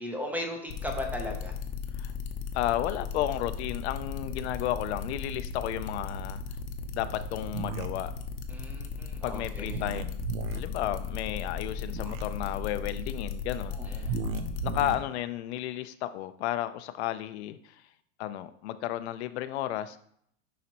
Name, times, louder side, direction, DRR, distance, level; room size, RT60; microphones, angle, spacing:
voice 1, 0.0-1.5 8.5-9.9 13.7-14.1, left 1 dB, 5° right, 3 dB, 0.7 m, -37 dB
sound 1, 0.7-14.9, left 6 dB, 40° left, 0.8 m, -36 dB
voice 2, 2.5-6.4 6.9-8.1 9.2-10.3 10.5-14.1 14.6-17.6 18.2-20.0, left 13 dB, 75° left, 11 dB, 0.6 m, -33 dB
sound 2, 7.5-7.9 9.7-10.6 11.8-12.2 14.0-15.0, right 5 dB, 60° right, 0.8 m, -34 dB
10.0 x 4.1 x 2.9 m, 0.66 s
supercardioid pair, 155°, 33 cm